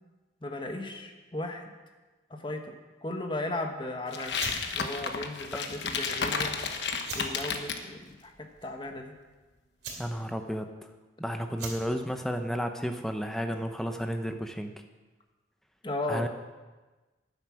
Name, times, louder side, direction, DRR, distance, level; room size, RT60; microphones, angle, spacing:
voice 1, 0.4-1.7 2.3-2.6 3.0-4.4 4.7-6.5 7.1-8.3 8.6-9.1 15.8-16.3, left 2 dB, 25° left, 4 dB, 1.2 m, -35 dB
sound 1, 4.1-7.8, left 5 dB, 75° left, 1.1 m, -32 dB
sound 2, 4.3-13.8, right 4 dB, 65° right, 2.8 m, -46 dB
voice 2, 10.0-10.7 11.2-14.7 16.1-16.3, equal, ahead, 6 dB, 0.8 m, -32 dB
11.5 x 9.8 x 6.2 m, 1.2 s
head